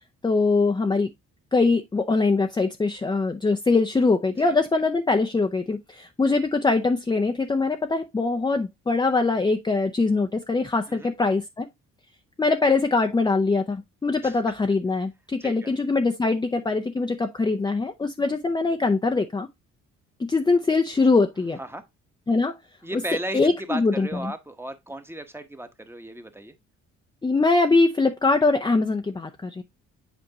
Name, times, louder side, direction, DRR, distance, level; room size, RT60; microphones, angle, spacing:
voice 1, 0.2-1.1 1.5-11.7 12.4-19.5 20.3-21.6 22.3-22.5 23.3-24.3 27.2-29.6, left 3 dB, 15° left, 0.5 m, -22 dB
voice 2, 15.4-15.7 21.6-21.8 22.8-23.4 23.7-26.5, right 1 dB, 10° right, 1.0 m, -35 dB
7.9 x 4.3 x 2.8 m
cardioid pair, 90°, 30 cm